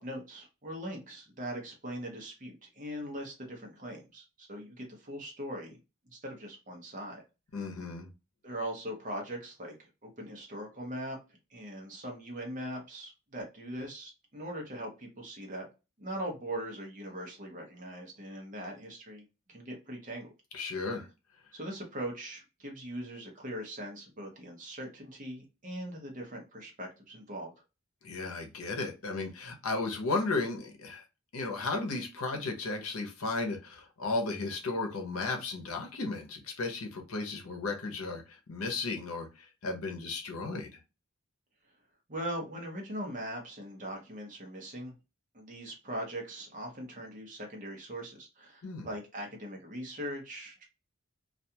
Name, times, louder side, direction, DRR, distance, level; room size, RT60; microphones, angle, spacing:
voice 1, 0.0-5.8 6.1-7.2 8.4-9.7 10.0-11.2 11.5-15.7 16.0-20.3 20.8-20.9 21.5-27.5 42.1-44.9 45.3-50.6, right 1 dB, 35° right, 0 dB, 0.8 m, -40 dB
voice 2, 7.5-8.1 20.5-21.1 28.0-31.0 31.3-40.8 48.6-48.9, left 3 dB, 80° left, 3 dB, 0.8 m, -34 dB
2.4 x 2.3 x 2.7 m, 0.29 s
head